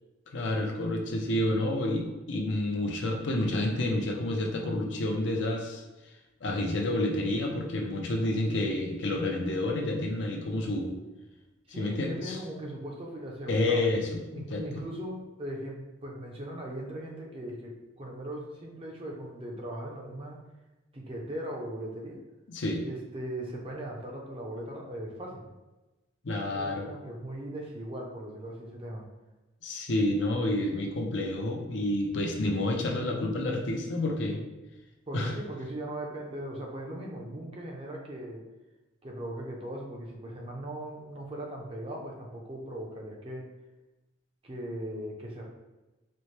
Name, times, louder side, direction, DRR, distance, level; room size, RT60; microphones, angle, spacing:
voice 1, 0.3-5.8 6.4-11.0 11.8-12.4 13.5-14.8 22.5-22.8 26.2-26.9 29.6-34.4 35.1-35.3, left 1 dB, 70° left, 1 dB, 0.6 m, -29 dB
voice 2, 11.7-20.4 20.9-22.2 22.8-25.5 26.5-29.0 35.1-38.4 39.0-43.4 44.4-45.5, right 1 dB, 30° right, -1 dB, 0.6 m, -39 dB
4.2 x 2.1 x 3.2 m, 1.1 s
head